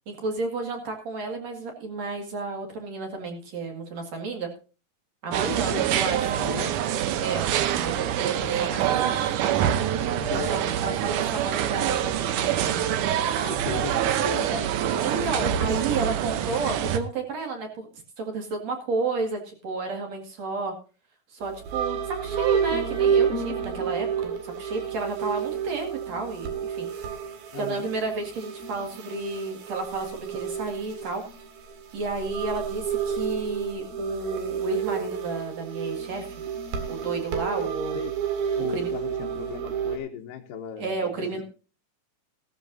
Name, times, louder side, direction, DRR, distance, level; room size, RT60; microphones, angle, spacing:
voice 1, 0.1-4.5 5.2-6.3 7.2-7.5 7.7-9.0 9.2-9.3 10.3-12.8 15.0-17.9 18.2-20.7 21.3-26.9 27.6-31.2 31.9-36.3 36.9-38.0 38.7-38.9 40.8-41.4, right 3 dB, 50° right, 3 dB, 3.1 m, -32 dB
sound 1, 5.3-17.0, right 10 dB, 70° right, 2.2 m, -25 dB
voice 2, 5.5-5.9 6.4-6.9 10.2-10.7 13.4-15.5 15.9-16.0 16.8-16.9 27.5-27.9 37.9-38.1 38.5-41.4, left 8 dB, 75° left, 0 dB, 2.5 m, -37 dB
sound 2, 21.4-40.0, right 7 dB, 85° right, 3.9 m, -30 dB
15.5 x 13.5 x 2.7 m, 0.34 s
omnidirectional pair, 4.2 m